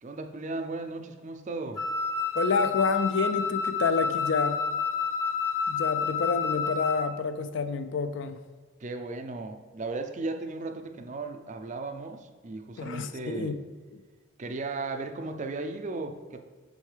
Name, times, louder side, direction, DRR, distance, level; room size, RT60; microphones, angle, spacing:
voice 1, 0.0-1.8 8.8-13.6 14.4-16.4, right 3 dB, 35° right, 6 dB, 0.4 m, -36 dB
Wind instrument woodwind instrument, 1.8-7.1, left 5 dB, 15° left, 0.6 m, -29 dB
voice 2, 2.3-4.6 5.7-8.4 12.8-13.6 13.9-14.0, left 4 dB, 55° left, 10 dB, 0.4 m, -28 dB
6.4 x 5.5 x 3.3 m, 1.4 s
head